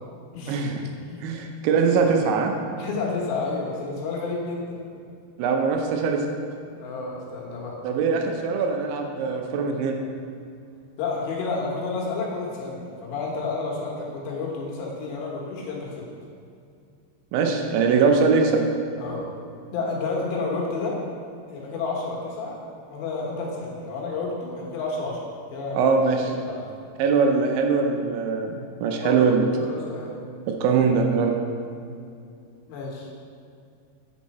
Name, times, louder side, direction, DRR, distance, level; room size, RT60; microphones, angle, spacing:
voice 1, 0.5-0.8 1.2-2.5 5.4-6.2 7.8-10.0 17.3-18.6 25.7-26.3 27.0-29.5 30.5-31.4, right 5 dB, 85° right, 3 dB, 3.1 m, -22 dB
voice 2, 2.8-4.8 6.7-7.8 11.0-16.1 19.0-19.3 19.7-21.0 21.5-22.5 22.9-25.2 25.5-25.9 26.2-26.7 29.0-29.2 29.5-30.1 32.7-33.1, left 3 dB, 75° left, -3 dB, 3.3 m, -30 dB
8.5 x 6.3 x 4.2 m, 2.4 s
omnidirectional pair, 5.3 m